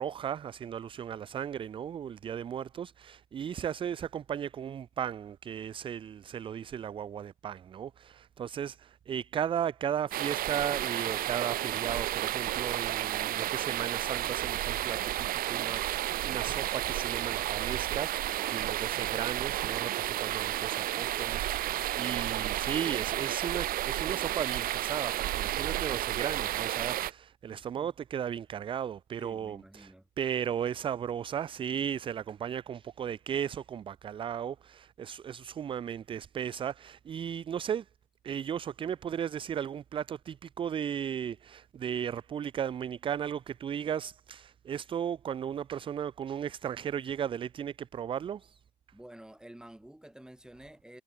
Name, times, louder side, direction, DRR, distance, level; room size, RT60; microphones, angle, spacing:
voice 1, 0.0-37.9 38.2-48.6, right 8 dB, 25° right, 0.5 m, -36 dB
sound 1, 10.1-27.1, right 14 dB, 50° right, 1.1 m, -32 dB
voice 2, 27.5-27.9 29.2-30.1 48.9-51.0, right 1 dB, 5° right, 6.0 m, -51 dB
supercardioid pair, 95°, 20 cm